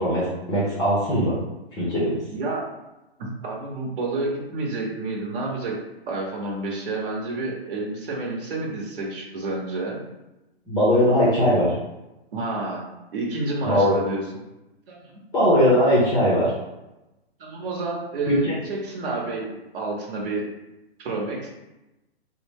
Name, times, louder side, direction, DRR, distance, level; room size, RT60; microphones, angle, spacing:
voice 1, 0.0-1.3 1.7-2.1 10.7-11.7 13.6-14.0 15.3-16.5 18.3-18.6, equal, 15° left, -8 dB, 0.7 m, -20 dB
voice 2, 2.3-2.6 3.2-5.8 6.1-10.0 12.3-14.2 14.9-15.2 17.4-20.4 21.0-21.5, right 2 dB, 55° right, -2 dB, 1.0 m, -29 dB
3.9 x 2.1 x 3.4 m, 0.98 s
hypercardioid pair, 135°, 32 cm